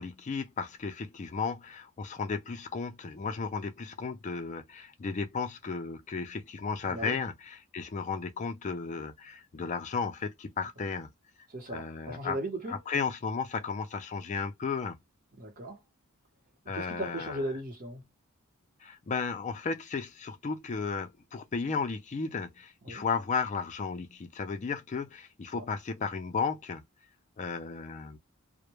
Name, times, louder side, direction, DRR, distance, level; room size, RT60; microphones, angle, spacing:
voice 1, 0.0-11.1 11.7-12.4 12.7-15.0 16.7-17.4 18.8-26.8 27.4-28.2, left 5 dB, 35° left, 0.3 m, -34 dB
voice 2, 6.9-7.2 11.5-12.8 15.4-15.8 16.6-18.1 22.8-23.0 25.5-25.6, right 1 dB, 40° right, 0.8 m, -37 dB
2.1 x 2.0 x 2.9 m
head